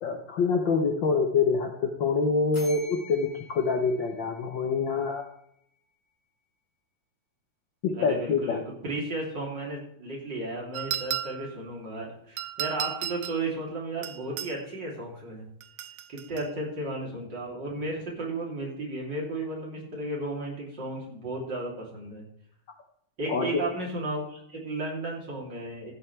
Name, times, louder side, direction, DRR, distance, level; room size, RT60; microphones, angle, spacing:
voice 1, 0.0-5.3 7.8-8.6 23.3-23.6, left 4 dB, 80° left, 4 dB, 1.0 m, -26 dB
sound 1, 2.5-5.3, left 3 dB, 25° left, 5.9 m, -47 dB
voice 2, 7.9-15.4 16.1-22.2 23.2-25.9, right 2 dB, 35° right, -2 dB, 3.7 m, -34 dB
sound 2, 10.7-11.6 12.4-13.4 14.0-14.6 15.6-16.5, right 11 dB, 80° right, 1.4 m, -34 dB
14.5 x 10.0 x 3.4 m, 0.71 s
omnidirectional pair, 3.6 m